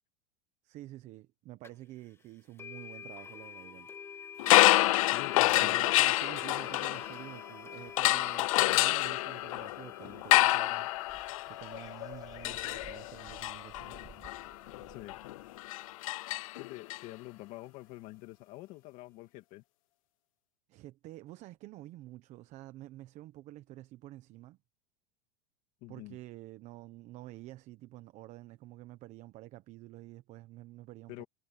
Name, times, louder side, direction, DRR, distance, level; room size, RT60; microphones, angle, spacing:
voice 1, 0.6-3.9 5.5-14.0 20.7-24.6 25.9-31.2, right 16 dB, 45° right, 1.1 m, -49 dB
sound 1, 1.6-1.7 2.6-13.6, left 7 dB, 15° left, 1.3 m, -49 dB
sound 2, 4.4-7.5 8.0-17.0, left 18 dB, 85° left, 0.5 m, -28 dB
voice 2, 5.0-5.9 14.9-15.2 16.6-19.6 25.8-26.2 31.1-31.2, left 19 dB, 50° left, 2.3 m, -46 dB
sound 3, 7.7-16.0, right 7 dB, 20° right, 1.7 m, -59 dB
supercardioid pair, 135°, 17 cm